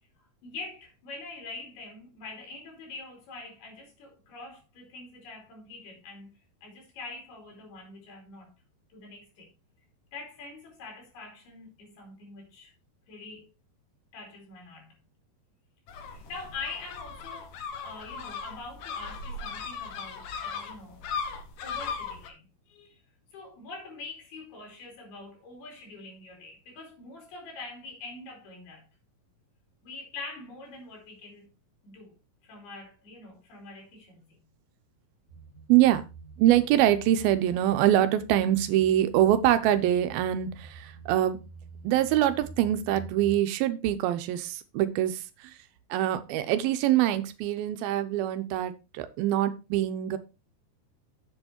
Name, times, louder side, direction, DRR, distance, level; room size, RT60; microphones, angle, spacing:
voice 1, 0.2-8.5 8.9-9.5 10.1-12.7 13.1-13.5 14.1-15.0 16.0-17.6 17.8-21.1 21.3-23.0 23.3-28.9 29.8-31.5 31.8-32.2 32.4-34.4, left 3 dB, 90° left, 5.4 m, -44 dB
sound 1, 15.9-22.3, left 5 dB, 65° left, 2.8 m, -37 dB
sound 2, 35.3-43.3, right 4 dB, 25° left, 3.8 m, -48 dB
voice 2, 35.7-36.0 36.4-41.4 41.8-45.5 45.9-50.2, right 12 dB, 80° right, 2.7 m, -24 dB
8.0 x 7.9 x 4.4 m
omnidirectional pair, 4.3 m